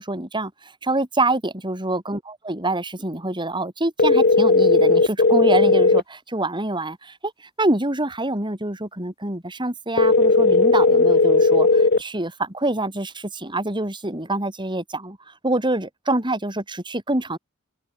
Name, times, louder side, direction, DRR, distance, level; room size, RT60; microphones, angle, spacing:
voice 1, 0.0-7.3 7.6-17.4, right 2 dB, 25° right, 5.1 m, -26 dB
sound 1, 4.0-6.0 10.0-12.0, left 3 dB, 50° left, 1.2 m, -16 dB
head